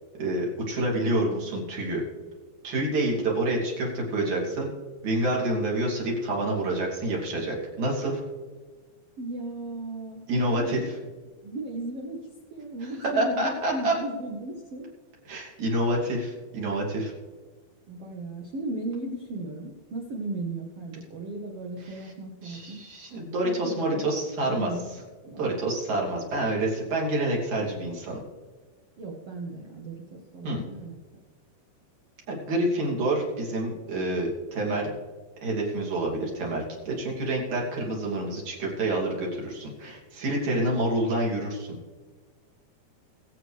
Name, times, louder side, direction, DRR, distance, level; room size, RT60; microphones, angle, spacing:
voice 1, 0.2-2.0 2.6-4.7 5.0-8.2 10.3-10.8 13.2-13.9 15.3-17.1 22.4-24.7 25.4-28.2 30.4-30.6 32.3-34.9 35.4-41.8, right 1 dB, 50° right, -2 dB, 3.8 m, -27 dB
voice 2, 1.0-1.4 9.2-10.2 10.5-10.8 11.4-12.2 12.5-14.9 17.9-22.8 23.4-24.0 24.5-24.8 25.2-25.5 29.0-30.9, right 2 dB, 90° right, 0 dB, 1.3 m, -36 dB
22.0 x 8.5 x 3.3 m, 1.4 s
omnidirectional pair, 4.9 m